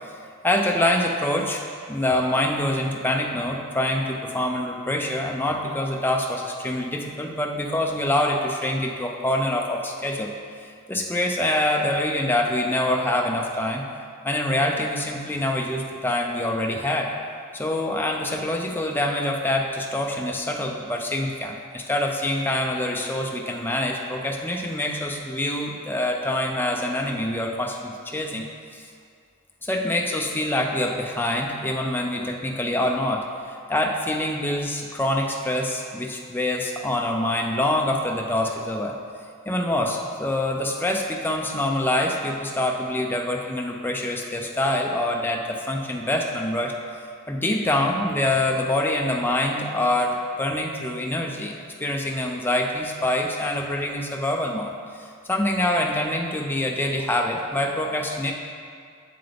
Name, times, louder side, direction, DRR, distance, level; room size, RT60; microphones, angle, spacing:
voice 1, 0.4-1.6 1.9-10.3 10.9-13.8 14.2-17.1 17.5-28.4 28.7-28.9 29.6-38.9 39.5-46.7 47.3-51.5 51.8-54.7 55.3-58.3, left 1 dB, 10° left, 0 dB, 0.5 m, -25 dB
7.6 x 6.8 x 3.5 m, 2.3 s
head